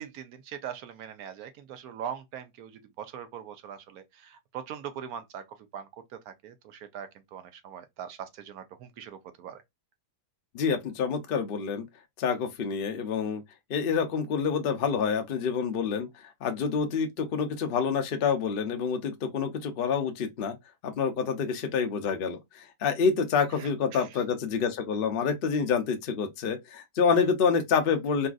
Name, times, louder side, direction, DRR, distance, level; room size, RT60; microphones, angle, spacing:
voice 1, 0.0-9.6 23.5-24.2 27.1-27.3, right 8 dB, 70° right, 1.0 m, -42 dB
voice 2, 10.5-11.8 12.2-13.4 13.7-16.1 16.4-20.5 20.8-28.3, left 6 dB, 75° left, 0.5 m, -27 dB
3.9 x 2.4 x 2.3 m
omnidirectional pair, 1.8 m